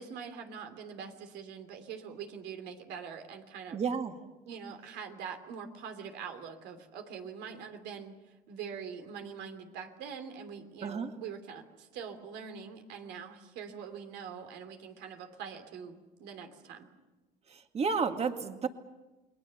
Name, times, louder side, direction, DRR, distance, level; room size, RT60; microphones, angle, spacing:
voice 1, 0.0-3.8 4.5-8.1 8.5-16.9, right 6 dB, 85° right, 6 dB, 3.1 m, -44 dB
voice 2, 3.7-4.2 10.8-11.1 17.5-18.7, right 5 dB, 40° right, 6 dB, 2.1 m, -31 dB
30.0 x 21.0 x 6.9 m, 1.1 s
cardioid pair, 110°, 17 cm